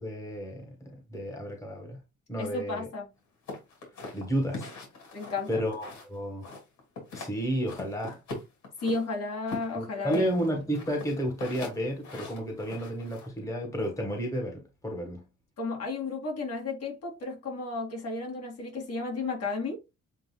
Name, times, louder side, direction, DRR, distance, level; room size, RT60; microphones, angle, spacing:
voice 1, 0.0-2.0 2.3-2.9 4.1-4.7 5.5-6.5 7.1-8.2 9.8-15.2, equal, 10° left, 1.4 m, -32 dB
voice 2, 2.4-3.1 5.1-5.6 8.8-10.2 15.6-19.8, left 3 dB, 55° left, 2.3 m, -33 dB
sound 1, 3.5-6.1 6.4-7.3 7.7-9.0 9.5-13.3, left 3 dB, 80° left, 2.5 m, -41 dB
7.4 x 2.7 x 2.2 m
cardioid pair, 130°, 30 cm